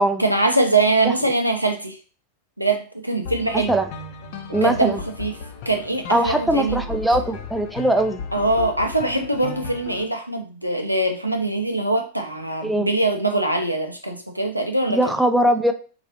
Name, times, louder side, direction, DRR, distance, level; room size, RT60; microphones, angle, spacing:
voice 1, 0.2-2.0 2.6-3.7 4.5-5.3 5.7-6.8 8.3-15.0, right 2 dB, 90° right, 4 dB, 0.6 m, -22 dB
sound 1, 3.2-10.0, left 5 dB, 50° left, 0.8 m, -35 dB
voice 2, 4.5-5.0 6.1-8.2 12.6-12.9 14.9-15.7, right 1 dB, 5° right, 5 dB, 0.5 m, -20 dB
3.9 x 2.6 x 4.1 m, 0.37 s
figure-of-eight pair, 90°, 0 cm